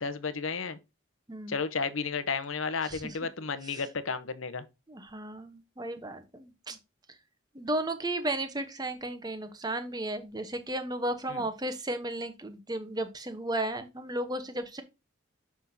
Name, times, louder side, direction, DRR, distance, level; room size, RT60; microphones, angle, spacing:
voice 1, 0.0-0.8 1.5-4.6 11.3-11.4, left 5 dB, 75° left, 0.9 m, -32 dB
voice 2, 2.8-3.2 3.6-3.8 4.9-6.8 7.5-14.8, right 1 dB, 20° right, 1.0 m, -34 dB
6.9 x 6.0 x 2.7 m
head